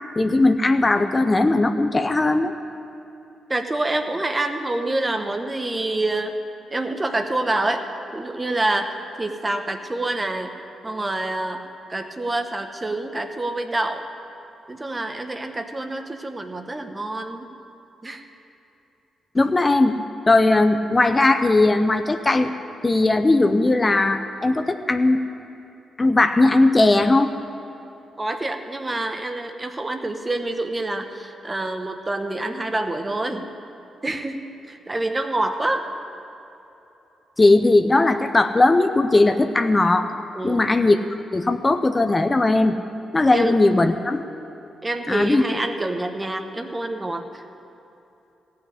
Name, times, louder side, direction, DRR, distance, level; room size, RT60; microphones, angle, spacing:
voice 1, 0.2-2.5 19.3-19.9 20.3-22.5 22.8-25.2 26.0-27.3 37.4-40.1 40.4-41.0 41.3-42.8 43.1-44.2 45.1-45.4, left 2 dB, 30° left, 7 dB, 0.7 m, -18 dB
voice 2, 3.5-6.4 6.7-7.9 8.1-10.5 10.8-14.0 14.7-17.5 18.0-18.2 28.2-33.5 34.0-34.4 34.7-35.9 40.3-40.7 43.3-43.6 44.8-47.4, right 2 dB, 25° right, 6 dB, 1.2 m, -27 dB
15.0 x 5.8 x 9.7 m, 2.9 s
supercardioid pair, 50°, 0 cm